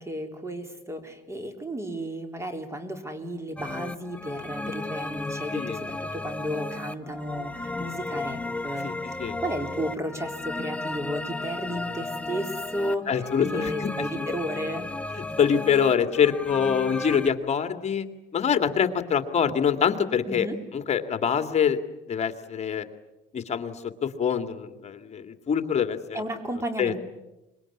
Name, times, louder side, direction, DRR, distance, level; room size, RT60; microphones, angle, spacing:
voice 1, 0.0-8.9 9.2-13.1 13.4-14.9 20.3-20.6 26.1-27.0, equal, 15° right, 7 dB, 4.0 m, -33 dB
sound 1, 3.6-17.3, left 2 dB, 10° left, 1.1 m, -34 dB
voice 2, 13.1-13.9 15.1-18.1 18.3-20.5 20.7-21.8 22.1-22.8 23.3-26.2 26.8-26.9, left 7 dB, 40° left, 8 dB, 2.3 m, -25 dB
25.5 x 22.5 x 10.0 m, 0.98 s
cardioid pair, 110°, 17 cm